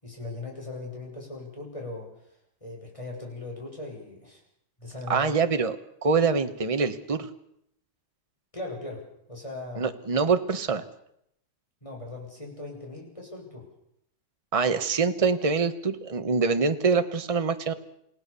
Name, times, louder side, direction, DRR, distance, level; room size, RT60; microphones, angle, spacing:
voice 1, 0.0-2.1 2.6-4.4 4.8-5.4 8.5-10.0 11.8-13.7, left 2 dB, 15° left, -1 dB, 6.8 m, -39 dB
voice 2, 5.1-5.7 6.0-7.3 9.8-10.8 14.5-17.7, right 5 dB, 20° right, 9 dB, 1.1 m, -24 dB
29.0 x 16.5 x 7.0 m, 0.75 s
omnidirectional pair, 1.9 m